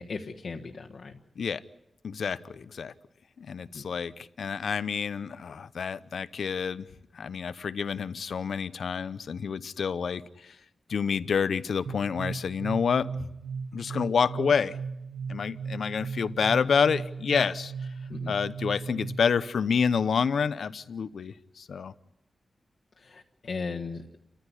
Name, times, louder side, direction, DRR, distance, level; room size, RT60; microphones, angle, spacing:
voice 1, 0.0-1.2 3.7-3.9 18.1-18.3 23.0-24.0, left 4 dB, 65° left, 1.5 m, -37 dB
voice 2, 2.0-2.9 3.4-4.1 4.4-6.9 7.1-10.2 10.9-13.3 13.7-14.8 15.3-17.7 18.3-21.9, left 6 dB, 85° left, 0.8 m, -28 dB
sound 1, 11.9-19.4, right 5 dB, 70° right, 1.2 m, -37 dB
29.0 x 14.5 x 9.9 m
wide cardioid pair, 125°, 0 cm